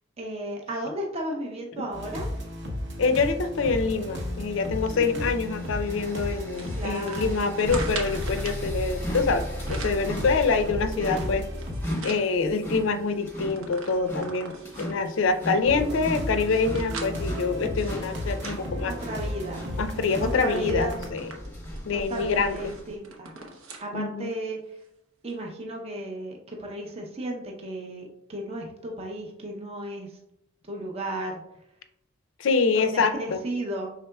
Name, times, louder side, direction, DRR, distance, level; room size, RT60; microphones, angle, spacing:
voice 1, 0.2-2.3 4.9-5.3 6.7-7.5 11.0-11.4 18.8-19.6 20.2-21.0 21.9-23.3 23.8-24.6 25.2-30.2 30.7-31.4 32.7-33.9, right 1 dB, 30° right, 0 dB, 0.6 m, -34 dB
sound 1, 1.9-11.8 12.5-12.6 13.5-13.6 15.6-21.1, left 1 dB, 55° right, 0.9 m, -33 dB
voice 2, 3.0-11.5 12.0-18.9 19.8-21.3 21.8-22.6 23.9-24.3 32.4-33.4, left 4 dB, 70° left, 9 dB, 0.4 m, -26 dB
sound 2, 4.7-23.0, equal, 10° left, 0.7 m, -39 dB
sound 3, 6.6-8.6 9.4-10.1 10.6-12.3 12.7-12.8 13.1-15.1 15.7-19.4 19.8-20.0 20.3-23.9 24.3-24.4 25.3-25.4, right 4 dB, 85° right, 0.8 m, -42 dB
5.4 x 3.7 x 2.2 m, 0.83 s
head